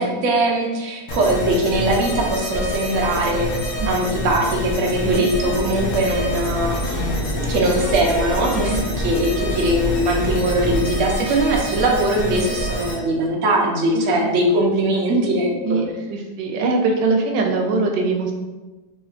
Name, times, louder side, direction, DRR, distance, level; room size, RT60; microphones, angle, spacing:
voice 1, 0.0-3.5 3.9-15.8, right 1 dB, 60° right, -1 dB, 0.9 m, -21 dB
sound 1, 1.1-12.9, left 1 dB, 55° left, 1.0 m, -27 dB
Mechanisms, 5.5-11.0, equal, 85° left, 1.3 m, -29 dB
voice 2, 13.9-14.3 14.6-14.7 15.6-18.3, right 3 dB, 85° right, 3 dB, 1.2 m, -22 dB
3.9 x 3.5 x 2.4 m, 1.2 s
omnidirectional pair, 1.9 m